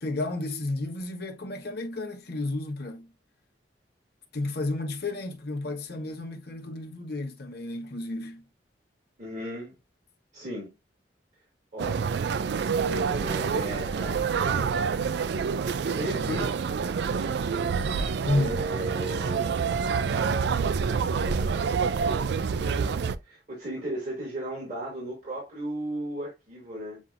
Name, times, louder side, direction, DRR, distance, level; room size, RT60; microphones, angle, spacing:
voice 1, 0.0-3.1 4.3-8.4 18.2-18.6, left 2 dB, 65° left, 1.0 m, -32 dB
voice 2, 9.2-9.8 10.3-10.7 11.7-12.0 12.9-14.8 15.8-17.4 18.2-21.5 21.8-27.0, right 1 dB, 45° right, 2.5 m, -37 dB
sound 1, 11.8-23.2, right 5 dB, 65° right, 0.4 m, -27 dB
7.3 x 2.7 x 2.4 m
head